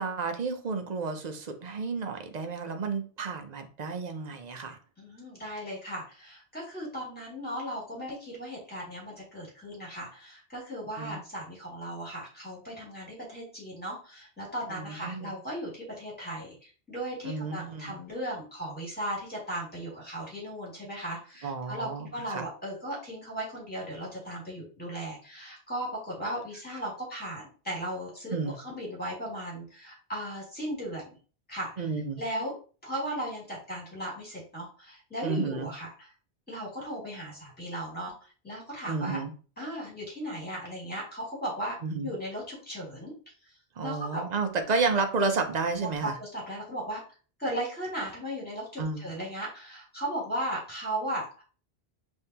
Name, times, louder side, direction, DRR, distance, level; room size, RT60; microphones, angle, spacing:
voice 1, 0.0-4.8 11.0-11.2 14.7-15.3 17.2-18.0 21.4-22.5 28.3-28.6 31.8-32.2 35.2-35.7 38.9-39.3 41.8-42.1 43.8-46.2 48.8-49.1, right 4 dB, 50° right, 6 dB, 0.6 m, -31 dB
voice 2, 5.0-31.1 31.5-31.8 32.2-32.5 32.8-36.1 36.5-38.1 38.4-39.2 39.6-41.7 42.0-43.1 43.8-44.2 45.8-47.0 47.4-51.4, right 1 dB, 10° left, -5 dB, 2.3 m, -36 dB
5.5 x 2.7 x 2.8 m, 0.38 s
omnidirectional pair, 1.1 m